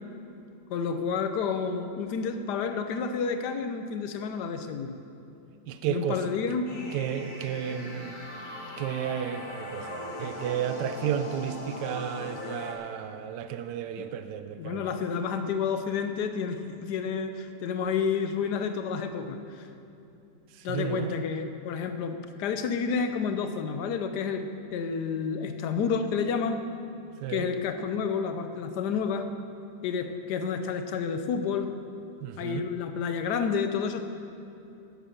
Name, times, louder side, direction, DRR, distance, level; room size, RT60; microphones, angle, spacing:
voice 1, 0.7-5.0 5.9-6.7 14.6-19.7 20.6-24.4 24.7-26.7 27.3-29.3 29.8-31.7 32.4-34.0, left 6 dB, 75° left, 8 dB, 1.4 m, -30 dB
voice 2, 5.7-6.3 6.9-8.2 8.8-14.8 20.7-21.1 27.2-27.5 32.2-32.7, right 9 dB, 90° right, 10 dB, 1.2 m, -32 dB
sound 1, 6.7-12.7, left 2 dB, 50° left, 2.1 m, -39 dB
11.5 x 10.0 x 6.7 m, 2.7 s
omnidirectional pair, 1.8 m